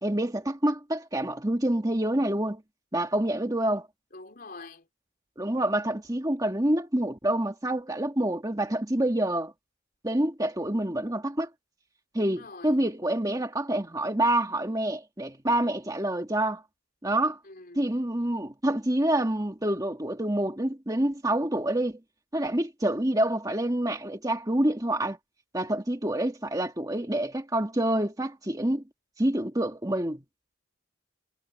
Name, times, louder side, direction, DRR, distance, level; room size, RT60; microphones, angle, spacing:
voice 1, 0.0-2.6 2.9-3.9 5.4-9.5 10.0-11.5 12.1-16.6 17.0-17.4 17.8-22.0 22.3-25.2 25.5-28.8 29.2-30.2, right 1 dB, 20° right, 1.9 m, -27 dB
voice 2, 4.1-4.8 12.2-12.8 17.5-17.9, left 3 dB, 45° left, 4.3 m, -45 dB
head